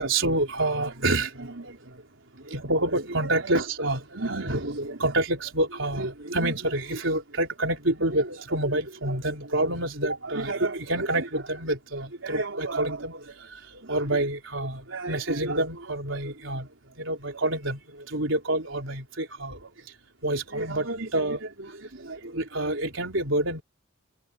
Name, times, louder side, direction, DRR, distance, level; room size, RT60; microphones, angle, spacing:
voice 1, 0.0-1.8 2.5-13.2 13.9-16.7 17.0-17.8 18.1-19.6 20.2-21.7 22.0-23.6, right 2 dB, 70° right, 4.0 m, -27 dB
open air
head